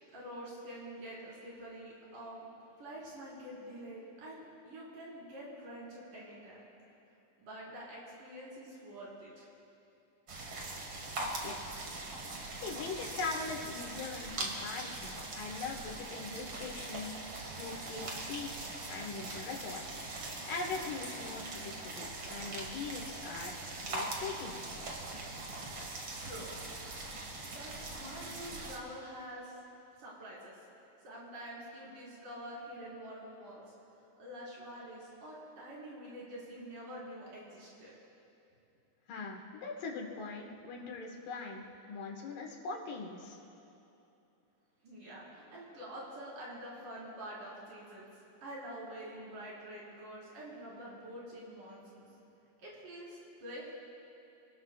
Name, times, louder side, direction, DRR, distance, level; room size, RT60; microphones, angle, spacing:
voice 1, 0.1-2.4 2.8-6.6 7.4-9.5 26.2-26.8 27.5-29.6 30.0-30.6 31.0-33.7 34.2-37.9 44.8-48.1 48.4-52.1 52.6-53.7, right 1 dB, 75° right, -7 dB, 6.2 m, -47 dB
sound 1, 10.3-28.8, right 2 dB, 45° right, 2.3 m, -41 dB
voice 2, 11.4-11.9 12.6-24.6 39.1-43.4, left 4 dB, 80° left, 0 dB, 3.3 m, -41 dB
28.5 x 19.5 x 2.4 m, 2.8 s
omnidirectional pair, 3.8 m